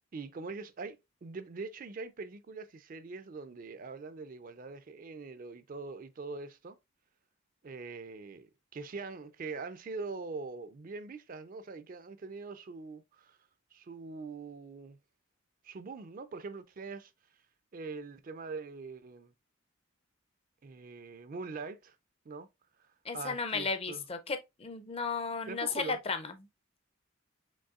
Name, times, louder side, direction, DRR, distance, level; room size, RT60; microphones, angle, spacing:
voice 1, 0.0-6.8 7.6-13.4 13.7-15.0 15.6-17.1 17.7-19.3 20.6-22.0 22.3-22.5 22.8-22.9 23.1-24.0 25.5-26.0, right 4 dB, 40° right, 0.4 m, -43 dB
voice 2, 23.0-26.3, left 4 dB, 25° left, 0.5 m, -34 dB
5.3 x 3.5 x 2.4 m
head